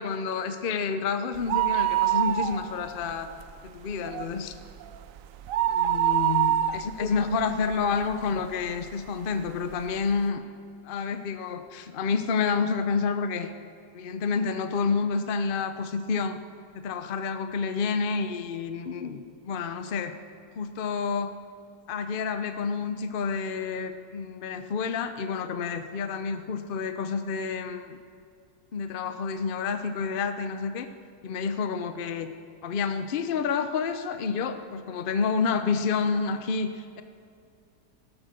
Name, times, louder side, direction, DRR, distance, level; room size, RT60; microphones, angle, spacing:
voice 1, 0.0-3.3 3.7-4.5 5.7-10.4 10.8-13.5 13.9-16.4 16.7-20.1 20.6-21.3 21.9-28.0 28.7-30.9 31.2-32.3 32.6-37.0, left 5 dB, 65° left, 9 dB, 0.5 m, -29 dB
sound 1, 1.4-3.0 3.3-3.4 3.9-8.3 8.8-8.9 9.7-9.8 10.0-10.1, right 12 dB, 70° right, 0.8 m, -25 dB
16.0 x 12.0 x 6.5 m, 2.4 s
omnidirectional pair, 1.9 m